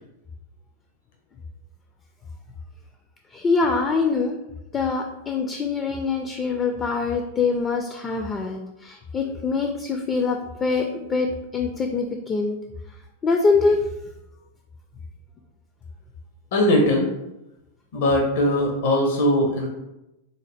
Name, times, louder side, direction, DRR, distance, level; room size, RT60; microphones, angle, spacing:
voice 1, 3.3-4.4 4.7-11.3 11.5-12.5 13.2-13.8, left 4 dB, 25° left, 3 dB, 0.4 m, -24 dB
voice 2, 16.5-17.1 17.9-19.7, left 1 dB, 65° left, 1 dB, 0.7 m, -20 dB
4.0 x 2.1 x 3.3 m, 0.93 s
hypercardioid pair, 100°, 0 cm